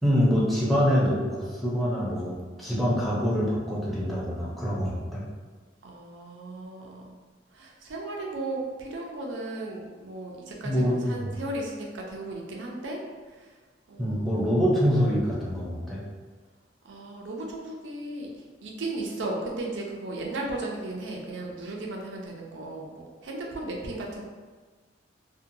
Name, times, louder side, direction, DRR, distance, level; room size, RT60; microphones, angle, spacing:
voice 1, 0.0-5.2 10.6-11.4 14.0-16.0, equal, ahead, -7 dB, 0.6 m, -25 dB
voice 2, 5.8-7.2 7.5-13.0 13.3-13.6 13.9-14.6 16.8-18.3 18.6-24.2, right 2 dB, 90° right, -1 dB, 0.5 m, -36 dB
2.7 x 2.2 x 2.6 m, 1.4 s
head